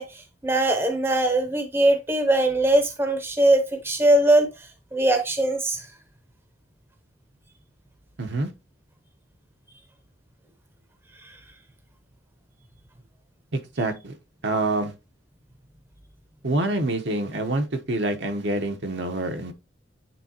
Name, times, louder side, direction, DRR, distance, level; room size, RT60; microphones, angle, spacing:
voice 1, 0.0-5.9 11.2-11.3, right 1 dB, 15° right, 0.7 m, -21 dB
voice 2, 8.2-8.5 13.5-14.1 14.4-14.9 16.4-19.5, right 2 dB, 70° right, 1.0 m, -26 dB
9.1 x 3.8 x 2.9 m
head